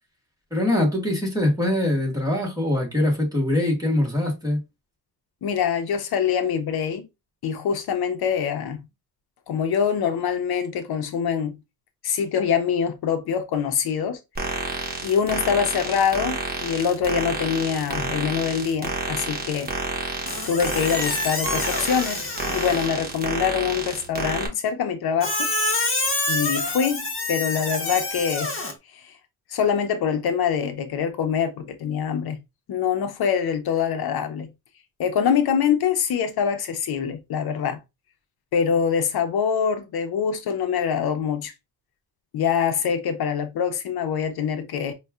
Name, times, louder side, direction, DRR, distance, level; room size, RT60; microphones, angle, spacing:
voice 1, 0.5-4.6, left 1 dB, 10° right, 1.5 m, -23 dB
voice 2, 5.4-7.1 7.4-8.8 9.5-11.6 12.0-14.6 15.0-19.7 20.5-25.5 26.3-28.5 28.9-29.1 29.5-32.4 32.7-34.5 35.0-37.8 38.5-41.5 42.3-44.9, left 7 dB, 80° left, 0.7 m, -24 dB
sound 1, 14.4-24.5, right 2 dB, 25° right, 1.0 m, -30 dB
Squeak, 20.3-23.0 25.2-28.7, left 2 dB, 35° left, 1.0 m, -27 dB
5.3 x 2.3 x 2.3 m
cardioid pair, 125°, 37 cm